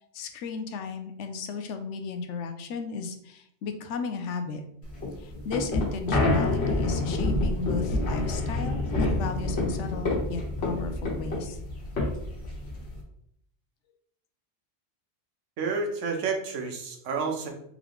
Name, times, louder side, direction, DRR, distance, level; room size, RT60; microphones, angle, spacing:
voice 1, 0.1-4.6 5.2-11.6, left 5 dB, 85° left, 7 dB, 0.9 m, -34 dB
sound 1, 4.9-13.0, left 2 dB, 65° left, 1.5 m, -28 dB
voice 2, 15.6-17.5, right 4 dB, 90° right, 3 dB, 1.1 m, -30 dB
3.6 x 3.0 x 3.4 m, 0.71 s
omnidirectional pair, 1.2 m